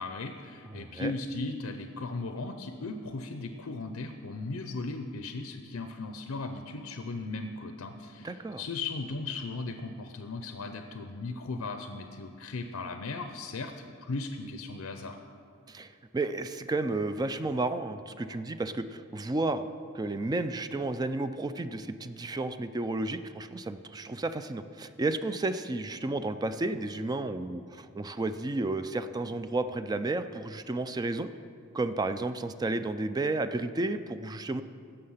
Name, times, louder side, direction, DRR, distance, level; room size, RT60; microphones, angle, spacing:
voice 1, 0.0-13.7 14.0-15.2, left 3 dB, 80° left, 6 dB, 0.6 m, -37 dB
voice 2, 0.7-1.1 8.2-8.6 15.7-19.7 19.9-31.3 31.7-34.6, right 2 dB, 20° right, 11 dB, 0.3 m, -32 dB
16.0 x 6.6 x 5.6 m, 2.3 s
head